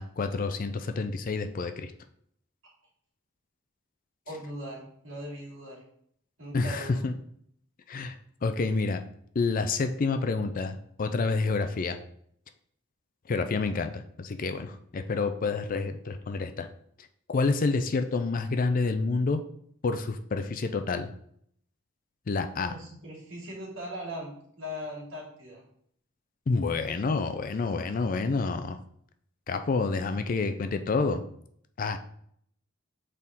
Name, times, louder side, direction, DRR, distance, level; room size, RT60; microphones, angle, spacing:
voice 1, 0.0-1.9 6.5-7.1 7.9-8.1 8.4-9.0 9.4-12.0 13.3-16.7 17.3-19.4 19.8-21.1 22.3-22.7 26.5-28.8 29.5-31.2 31.8-32.0, left 4 dB, 40° left, 9 dB, 0.4 m, -28 dB
voice 2, 4.3-5.8 6.4-7.0 22.6-25.6, equal, 65° right, -4 dB, 2.5 m, -39 dB
6.5 x 4.1 x 3.6 m, 0.67 s
head